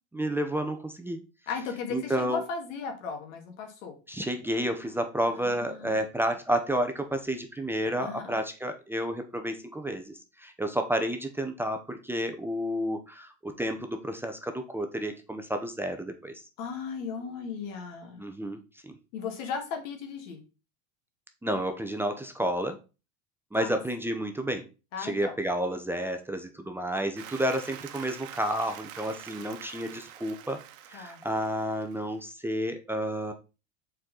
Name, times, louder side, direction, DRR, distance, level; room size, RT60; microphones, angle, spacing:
voice 1, 0.1-1.2 1.9-2.4 4.1-16.4 18.2-18.9 21.4-22.8 23.5-24.6 25.0-30.6 30.9-33.3, equal, 5° right, 6 dB, 0.7 m, -31 dB
voice 2, 1.5-4.0 5.3-6.0 8.0-8.4 16.6-18.2 19.1-20.4 23.5-23.8 24.9-25.3 30.9-31.2, left 6 dB, 75° left, 4 dB, 2.1 m, -36 dB
Applause, 27.2-32.2, right 11 dB, 60° right, 1.1 m, -46 dB
6.3 x 4.6 x 3.9 m, 0.31 s
supercardioid pair, 115°, 39 cm